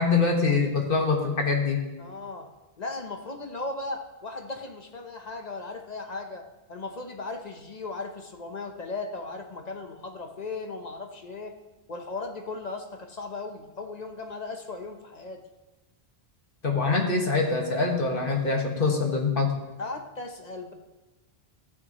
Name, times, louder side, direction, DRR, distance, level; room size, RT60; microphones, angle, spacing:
voice 1, 0.0-1.8 16.6-19.5, left 4 dB, 60° left, 1 dB, 1.7 m, -24 dB
voice 2, 2.0-2.5 2.8-6.4 6.7-11.5 11.9-15.4 19.8-20.7, left 3 dB, 45° left, 4 dB, 1.0 m, -37 dB
14.0 x 9.2 x 3.0 m, 1.1 s
omnidirectional pair, 1.1 m